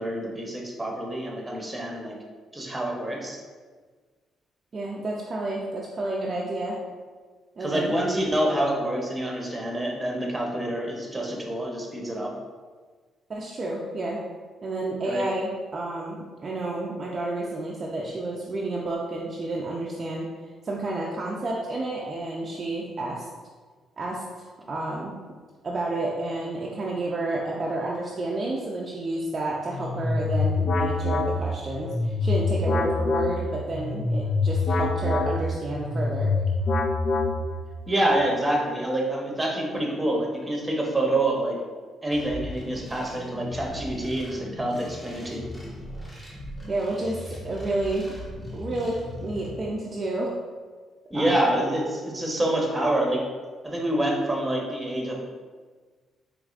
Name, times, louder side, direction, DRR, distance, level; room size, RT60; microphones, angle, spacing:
voice 1, 0.0-2.1 2.5-3.4 7.6-12.3 15.0-15.2 37.9-41.6 42.0-45.5 51.1-53.2 53.6-55.2, right 1 dB, 15° right, -1 dB, 0.9 m, -27 dB
voice 2, 4.7-6.8 7.6-7.9 13.3-14.2 14.6-20.3 20.6-23.3 24.0-25.1 25.6-36.3 46.7-48.1 48.5-50.3 51.1-51.4, right 2 dB, 40° right, -3 dB, 0.5 m, -30 dB
sound 1, 29.7-37.8, left 3 dB, 55° left, 0.4 m, -25 dB
sound 2, 42.1-49.5, left 1 dB, 10° left, 1.0 m, -39 dB
4.8 x 3.1 x 2.4 m, 1.5 s
cardioid pair, 90°, 0 cm